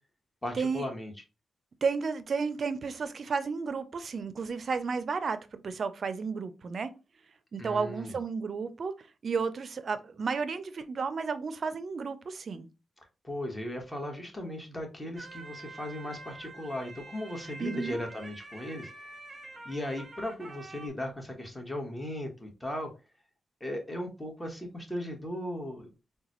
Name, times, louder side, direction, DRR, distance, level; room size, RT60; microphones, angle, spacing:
voice 1, 0.4-1.1 7.6-8.2 13.2-18.9 19.6-22.9 23.6-25.9, left 1 dB, 15° left, 1.2 m, -37 dB
voice 2, 1.8-6.9 7.5-8.9 9.2-12.7 17.6-18.0, right 5 dB, 60° right, 0.4 m, -32 dB
sound 1, 15.2-20.9, right 2 dB, 30° right, 0.8 m, -46 dB
3.9 x 2.2 x 2.9 m
cardioid pair, 65°, 0 cm